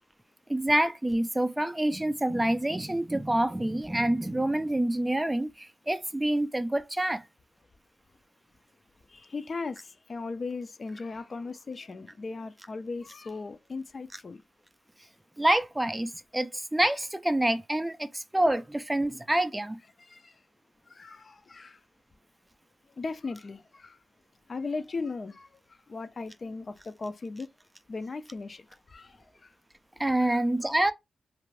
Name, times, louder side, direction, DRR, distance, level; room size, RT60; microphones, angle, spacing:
voice 1, 0.5-7.2 15.4-19.8 30.0-30.9, right 1 dB, 15° right, 0.4 m, -27 dB
voice 2, 9.1-14.4 20.0-20.4 20.9-21.8 23.0-24.0 24.5-27.5 27.9-29.5 30.2-30.7, left 3 dB, 45° left, 0.5 m, -38 dB
2.5 x 2.5 x 3.2 m
cardioid pair, 60°, 0 cm